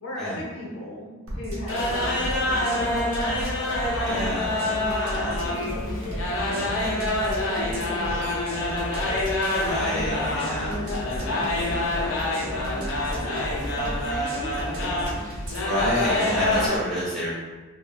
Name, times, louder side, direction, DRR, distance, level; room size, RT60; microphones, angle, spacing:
voice 1, 0.0-3.1 3.9-4.3 4.6-9.4 9.7-15.2, left 1 dB, 85° left, -4 dB, 1.0 m, -36 dB
sound 1, 1.3-16.7, equal, 80° right, 0.9 m, -35 dB
sound 2, 1.7-16.8, left 1 dB, 65° left, 0.5 m, -27 dB
voice 2, 4.0-4.5 6.4-6.7 9.6-10.7 15.6-17.5, equal, ahead, -10 dB, 1.1 m, -29 dB
3.6 x 2.2 x 2.3 m, 1.3 s
head